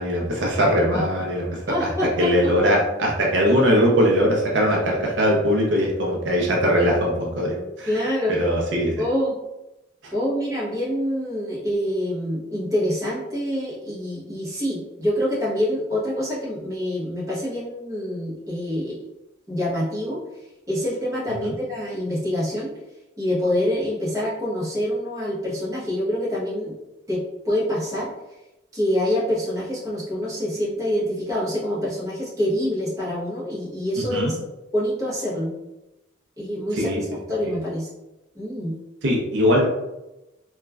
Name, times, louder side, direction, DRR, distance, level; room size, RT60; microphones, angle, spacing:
voice 1, 0.0-1.9 2.2-9.0 10.0-10.1 34.1-34.3 36.8-37.0 37.4-37.5 39.0-39.7, equal, 70° right, -1 dB, 0.5 m, -21 dB
voice 2, 1.7-2.5 7.9-8.3 9.0-9.4 10.1-19.0 19.5-20.2 20.7-22.7 23.2-26.8 27.1-28.1 28.7-34.4 34.7-35.5 36.4-37.9 38.3-38.8, equal, 15° right, -7 dB, 0.8 m, -26 dB
3.0 x 2.3 x 2.2 m, 0.95 s
head